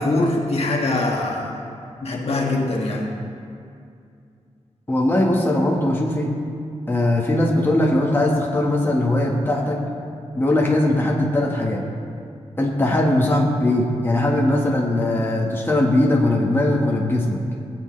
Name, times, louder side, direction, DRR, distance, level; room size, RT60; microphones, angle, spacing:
voice 1, 0.0-1.5 2.0-3.1, left 2 dB, 60° left, -1 dB, 1.7 m, -22 dB
voice 2, 4.9-6.3 6.9-9.8 10.3-11.8 12.6-17.4, left 1 dB, 20° left, -2 dB, 1.4 m, -20 dB
20.5 x 8.0 x 3.2 m, 2.4 s
wide cardioid pair, 105°, 12 cm